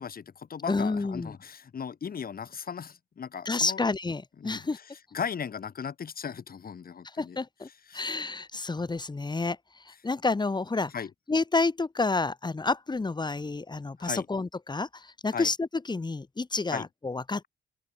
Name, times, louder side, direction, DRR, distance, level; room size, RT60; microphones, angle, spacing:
voice 1, 0.0-3.8 4.4-7.4 7.9-8.2 10.9-11.1 14.0-14.3 15.3-15.5 16.7-16.9, left 7 dB, 50° left, 7.7 m, -37 dB
voice 2, 0.7-1.3 3.4-4.8 7.2-7.7 7.9-9.6 9.9-10.9 11.3-17.4, left 3 dB, 20° left, 2.9 m, -29 dB
open air
cardioid pair, 90°, 20 cm